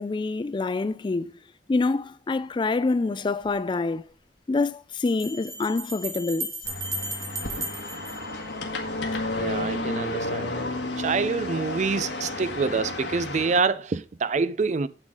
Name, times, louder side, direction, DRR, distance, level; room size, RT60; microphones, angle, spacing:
voice 1, 0.0-1.3 1.7-4.0 4.5-6.5, left 3 dB, 25° left, 0.3 m, -26 dB
Bell, 3.4-3.5 5.1-9.0, right 1 dB, 20° right, 1.4 m, -35 dB
sound 1, 6.6-13.6, left 2 dB, 85° left, 1.6 m, -31 dB
voice 2, 9.3-10.7 11.0-14.9, right 4 dB, 40° right, 0.4 m, -26 dB
8.1 x 7.3 x 3.7 m
head